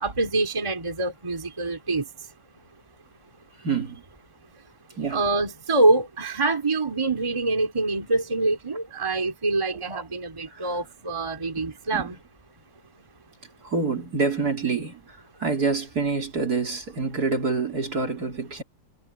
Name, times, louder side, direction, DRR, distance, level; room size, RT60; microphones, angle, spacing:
voice 1, 0.0-2.0 5.1-12.2, right 2 dB, 15° right, 2.3 m, -25 dB
voice 2, 3.6-4.0 4.9-5.2 9.7-10.0 10.5-10.8 11.6-12.2 13.6-18.6, right 4 dB, 50° right, 3.8 m, -27 dB
omnidirectional pair, 2.1 m